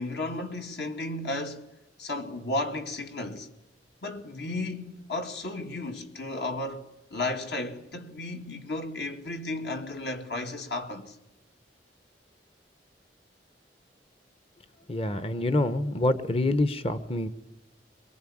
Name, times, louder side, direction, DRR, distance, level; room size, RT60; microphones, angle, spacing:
voice 1, 0.0-1.7 2.0-3.5 4.0-11.1, left 2 dB, 70° left, 2.3 m, -34 dB
voice 2, 14.9-17.3, left 1 dB, 35° left, 1.0 m, -26 dB
24.5 x 22.5 x 8.7 m
head